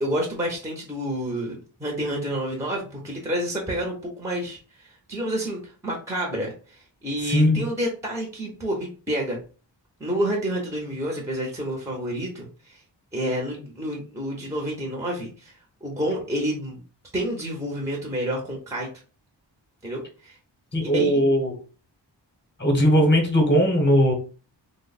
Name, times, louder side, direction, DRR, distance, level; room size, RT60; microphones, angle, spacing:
voice 1, 0.0-9.4 10.0-12.8 13.1-15.5 15.8-16.8 17.1-18.9 19.8-20.4 20.8-21.1, equal, 5° right, 0 dB, 0.6 m, -29 dB
voice 2, 7.2-7.6 20.7-21.6 22.6-24.1, equal, 25° left, 3 dB, 0.8 m, -19 dB
3.0 x 2.0 x 4.0 m, 0.37 s
wide cardioid pair, 160°, 44 cm